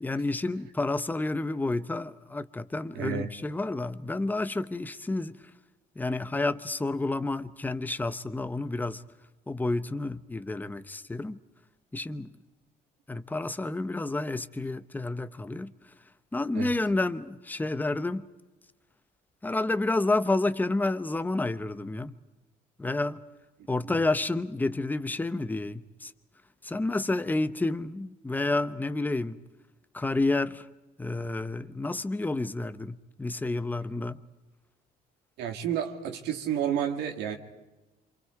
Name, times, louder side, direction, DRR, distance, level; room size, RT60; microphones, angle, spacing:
voice 1, 0.0-5.4 6.0-9.0 9.5-11.4 11.9-12.3 13.1-15.7 16.3-18.3 19.4-22.1 22.8-23.2 23.7-26.1 26.6-29.4 29.9-30.7 31.0-34.2, left 2 dB, 10° left, 0.9 m, -30 dB
voice 2, 2.9-3.3 16.5-16.7 35.4-37.4, right 9 dB, 90° right, 2.5 m, -30 dB
28.0 x 25.5 x 4.7 m
cardioid pair, 110°, 17 cm